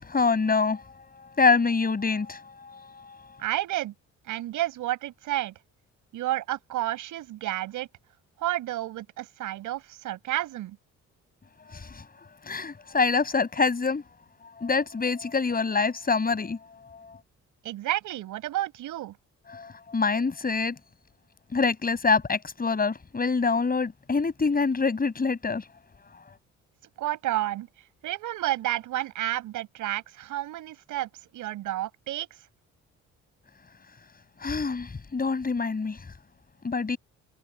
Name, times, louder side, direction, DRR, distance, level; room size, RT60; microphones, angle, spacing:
voice 1, 0.0-0.9 1.4-3.0 11.7-12.0 12.4-14.0 14.6-16.6 16.9-17.2 19.5-20.8 21.5-25.6 34.4-36.0 36.6-37.0, left 4 dB, 30° left, 6.5 m, -25 dB
voice 2, 3.4-3.9 4.2-5.5 6.1-7.9 8.4-10.8 17.6-19.2 27.0-27.7 28.0-32.3, right 14 dB, 85° right, 6.5 m, -31 dB
cardioid pair, 90°, 30 cm